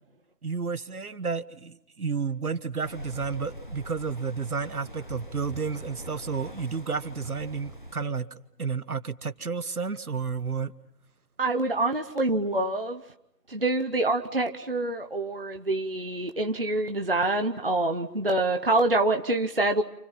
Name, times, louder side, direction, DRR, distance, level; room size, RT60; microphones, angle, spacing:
voice 1, 0.4-8.3 8.6-10.7, right 5 dB, 60° right, 1.4 m, -31 dB
sound 1, 2.8-7.9, equal, 30° left, 1.1 m, -43 dB
voice 2, 11.4-13.0 13.5-19.8, right 2 dB, 35° right, 1.0 m, -26 dB
30.0 x 28.5 x 5.7 m
figure-of-eight pair, 180°, 49 cm